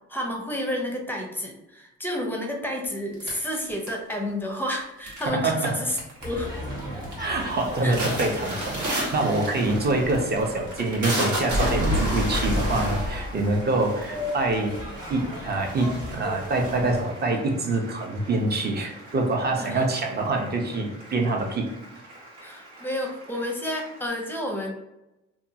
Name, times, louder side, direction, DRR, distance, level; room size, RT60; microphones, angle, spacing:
voice 1, 0.1-6.0 6.2-6.6 7.8-7.9 19.6-19.8 22.4-24.7, left 1 dB, 5° left, 1 dB, 0.6 m, -30 dB
sound 1, 3.2-4.3 5.1-5.6 5.9-6.4 6.8-7.2 7.5-14.6 15.2-15.3 15.6-17.2, equal, 75° right, 1.1 m, -29 dB
voice 2, 5.3-5.8 7.2-14.8 15.1-21.8, right 2 dB, 35° right, 2 dB, 0.6 m, -25 dB
Applause, 6.0-24.1, right 1 dB, 90° right, 1.1 m, -47 dB
sound 2, 6.2-17.0, left 1 dB, 15° right, 1.0 m, -38 dB
2.7 x 2.3 x 2.7 m, 0.95 s
cardioid pair, 90°, 30 cm